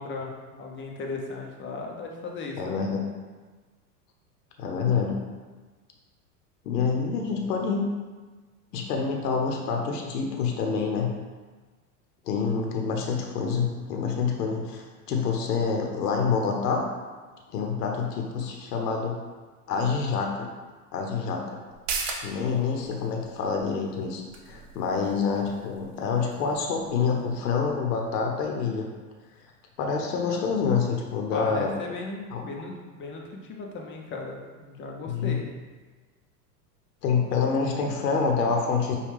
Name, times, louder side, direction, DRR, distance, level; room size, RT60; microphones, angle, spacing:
voice 1, 0.0-2.8 31.3-35.5, left 3 dB, 25° left, 0 dB, 0.6 m, -36 dB
voice 2, 2.6-3.0 4.6-5.2 6.6-7.9 8.7-11.1 12.2-16.9 17.5-19.2 19.7-20.5 20.9-21.6 22.2-28.9 29.8-31.7 32.3-32.5 35.1-35.4 37.0-39.0, left 5 dB, 80° left, 1 dB, 0.8 m, -27 dB
sound 1, 21.7-28.8 29.2-29.3, right 4 dB, 55° right, 0.8 m, -40 dB
5.0 x 2.3 x 3.2 m, 1.3 s
hypercardioid pair, 105°, 47 cm